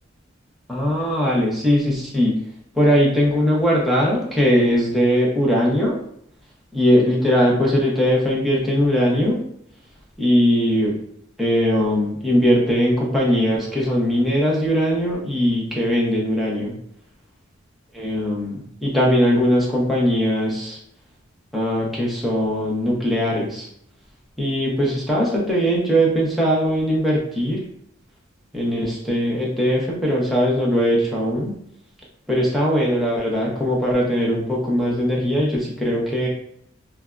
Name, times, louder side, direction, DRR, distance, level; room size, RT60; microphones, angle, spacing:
voice 1, 0.7-2.4 2.7-6.0 6.7-9.4 10.2-11.0 11.4-16.7 17.9-20.8 21.5-23.7 24.4-27.6 28.5-31.5 32.3-36.3, equal, ahead, -5 dB, 0.7 m, -20 dB
3.3 x 2.3 x 2.4 m, 0.70 s
head